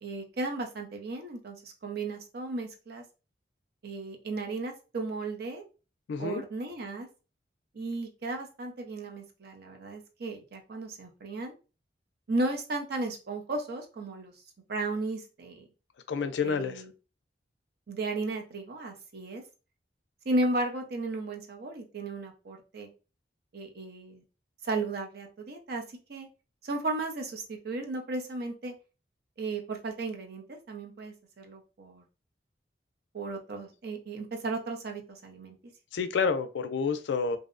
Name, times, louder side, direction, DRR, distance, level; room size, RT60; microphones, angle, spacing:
voice 1, 0.0-3.0 3.8-5.6 6.2-7.1 7.7-11.5 12.3-14.3 14.7-15.6 16.4-16.9 17.9-19.4 20.2-22.9 23.5-24.2 24.6-26.3 26.6-28.7 29.4-32.0 33.1-35.6, right 2 dB, 60° right, 0.6 m, -35 dB
voice 2, 6.1-6.4 16.1-16.8 35.9-37.4, left 5 dB, 85° left, 0.4 m, -29 dB
2.6 x 2.0 x 2.5 m
head